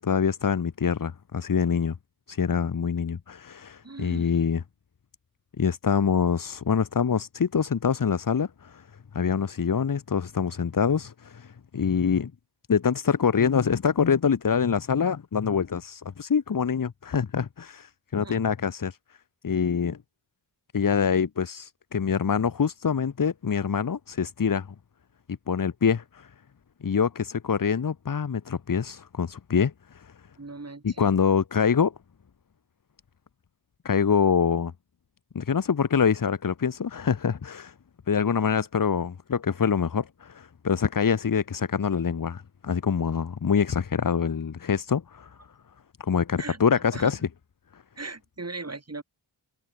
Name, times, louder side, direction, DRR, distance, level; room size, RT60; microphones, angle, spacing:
voice 1, 0.0-2.0 2.3-4.6 5.6-8.8 9.1-12.3 12.7-19.0 19.4-20.0 20.7-24.7 25.5-26.3 26.8-30.1 30.8-31.9 33.8-34.7 35.3-37.7 38.1-45.3 46.0-47.2 47.7-47.8, left 6 dB, 50° left, 1.1 m, -25 dB
voice 2, 3.8-4.3 18.1-18.4 30.4-31.1 46.4-47.1 48.0-49.0, right 3 dB, 35° right, 6.0 m, -39 dB
wide cardioid pair, 85°, 43 cm